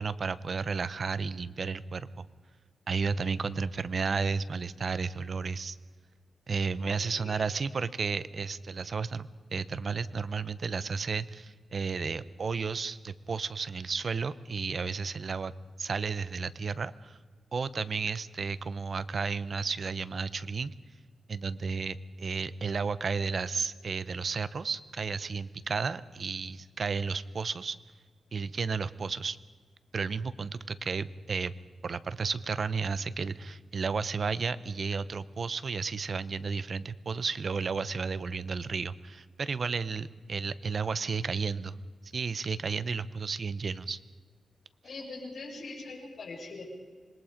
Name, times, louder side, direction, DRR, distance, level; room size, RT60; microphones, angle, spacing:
voice 1, 0.0-2.3 2.9-5.8 6.5-15.5 15.8-17.2 17.5-20.7 21.3-27.8 28.3-29.4 29.9-31.5 31.8-41.8 42.0-44.0, right 5 dB, 45° right, 15 dB, 0.7 m, -33 dB
voice 2, 6.8-7.5 44.8-46.6, left 3 dB, 50° left, -6 dB, 6.8 m, -42 dB
26.0 x 20.5 x 5.1 m, 1.5 s
wide cardioid pair, 140°, 0 cm